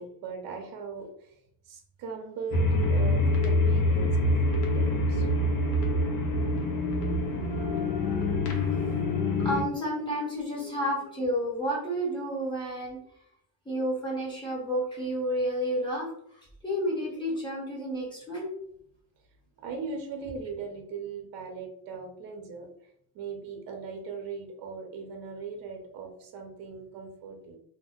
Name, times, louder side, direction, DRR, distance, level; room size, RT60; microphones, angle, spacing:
voice 1, 0.0-5.3 19.6-27.6, right 5 dB, 55° right, 3 dB, 0.7 m, -39 dB
sound 1, 2.5-9.6, left 1 dB, 70° left, 0.9 m, -25 dB
voice 2, 9.4-13.0 13.6-16.1 16.6-18.5, equal, 10° left, -4 dB, 1.0 m, -30 dB
2.8 x 2.1 x 3.5 m, 0.68 s
cardioid pair, 165°, 41 cm